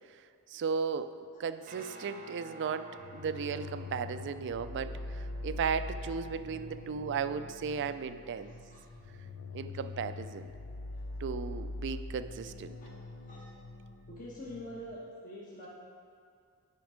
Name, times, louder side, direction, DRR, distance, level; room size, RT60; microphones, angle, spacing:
voice 1, 0.5-8.5 9.5-10.5 11.2-12.8, right 6 dB, 55° right, 11 dB, 0.3 m, -35 dB
Guitar, 1.6-13.1, right 2 dB, 35° right, 0.7 m, -54 dB
sound 1, 3.0-14.9, left 2 dB, 80° left, 0.5 m, -43 dB
voice 2, 8.4-8.8 10.9-11.2 12.8-12.9 13.2-13.5 14.1-15.7, equal, 40° left, -7 dB, 1.3 m, -46 dB
9.3 x 5.2 x 5.0 m, 2.3 s
head